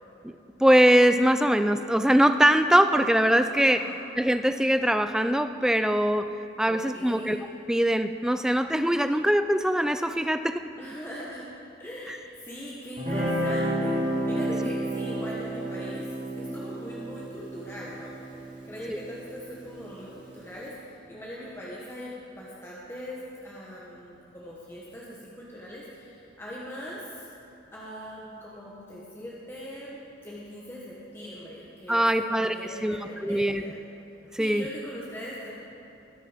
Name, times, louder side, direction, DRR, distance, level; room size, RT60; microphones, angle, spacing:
voice 1, 0.6-3.8 4.2-6.3 6.6-7.4 7.7-10.7 18.9-19.0 31.9-32.5 32.8-33.0 33.2-33.6 34.3-34.6, equal, 5° right, 9 dB, 0.3 m, -22 dB
voice 2, 3.4-4.0 6.6-7.4 10.8-11.5 11.8-27.3 27.7-33.8 34.4-35.5, equal, 15° left, -6 dB, 1.3 m, -41 dB
Guitar, 13.0-20.1, right 1 dB, 45° right, 2.7 m, -31 dB
20.0 x 6.7 x 5.1 m, 2.7 s
head